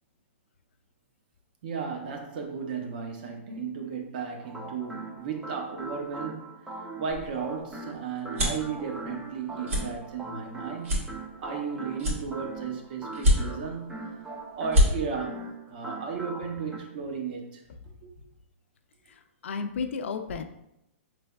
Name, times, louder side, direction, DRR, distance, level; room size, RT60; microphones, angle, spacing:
voice 1, 1.6-6.5 7.0-11.1 11.4-14.1 14.5-15.4 15.7-17.6 18.0-18.1, right 6 dB, 40° right, 0.7 m, -35 dB
sound 1, 4.4-16.8, right 2 dB, 5° right, 0.3 m, -41 dB
sound 2, 7.1-8.7 9.2-9.4 9.6-9.8 10.3-10.4 10.8-11.6 12.0-12.7 13.1-13.8 14.2-14.3 14.6-14.9, equal, 75° right, 1.4 m, -24 dB
voice 2, 19.1-20.4, left 5 dB, 65° left, 0.4 m, -33 dB
5.0 x 3.2 x 2.3 m
hypercardioid pair, 165°, 7 cm